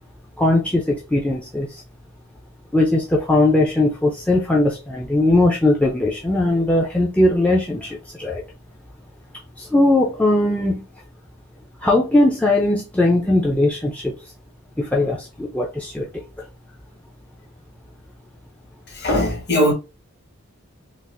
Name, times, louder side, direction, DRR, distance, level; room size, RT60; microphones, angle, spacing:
voice 1, 0.4-1.8 2.7-8.4 9.6-10.8 11.8-14.1 14.8-16.1 16.4-16.5, left 2 dB, 5° left, 0.4 m, -19 dB
voice 2, 18.9-19.7, equal, 50° left, 1.2 m, -19 dB
3.9 x 2.4 x 2.5 m
head